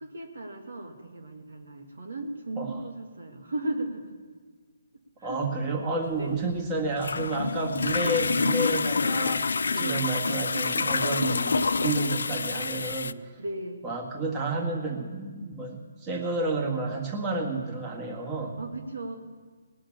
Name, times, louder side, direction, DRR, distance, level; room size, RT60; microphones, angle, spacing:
voice 1, 0.0-4.2 5.2-5.4 6.2-6.4 9.7-10.1 13.4-13.8 18.4-19.2, right 2 dB, 75° right, 4 dB, 1.9 m, -36 dB
voice 2, 5.2-9.4 9.8-13.3 13.8-18.6, right 2 dB, 20° right, 0 dB, 1.8 m, -30 dB
sound 1, 6.1-13.1, left 4 dB, 75° left, 0.3 m, -27 dB
19.5 x 6.5 x 8.7 m, 1.5 s
hypercardioid pair, 145°, 0 cm